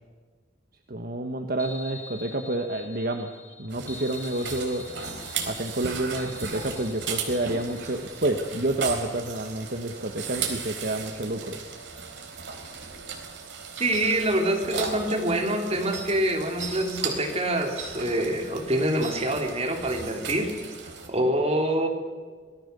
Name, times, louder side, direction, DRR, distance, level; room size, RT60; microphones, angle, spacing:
voice 1, 0.9-3.3 3.6-4.8 5.5-11.6, right 1 dB, 55° right, 5 dB, 1.4 m, -29 dB
sound 1, 1.6-8.2, left 4 dB, 10° left, 5.3 m, -45 dB
sound 2, 3.7-21.1, right 5 dB, 70° right, 3.9 m, -36 dB
voice 2, 13.8-20.5 21.1-21.9, right 1 dB, 35° right, 2 dB, 3.5 m, -25 dB
26.0 x 18.5 x 6.9 m, 1.5 s
head